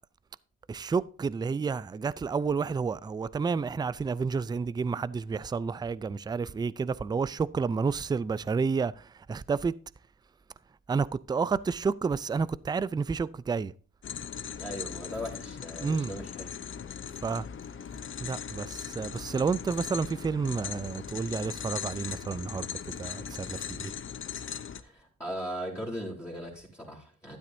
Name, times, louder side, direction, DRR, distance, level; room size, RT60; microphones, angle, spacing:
voice 1, 0.7-9.7 10.9-13.7 15.8-16.1 17.2-17.5 18.2-23.9, right 5 dB, 15° right, 0.3 m, -30 dB
metal clanking, 14.0-24.8, left 7 dB, 40° left, 0.7 m, -39 dB
voice 2, 14.6-16.5 24.8-27.4, equal, 10° left, 3.1 m, -38 dB
12.0 x 9.6 x 2.6 m
cardioid pair, 90°, 30 cm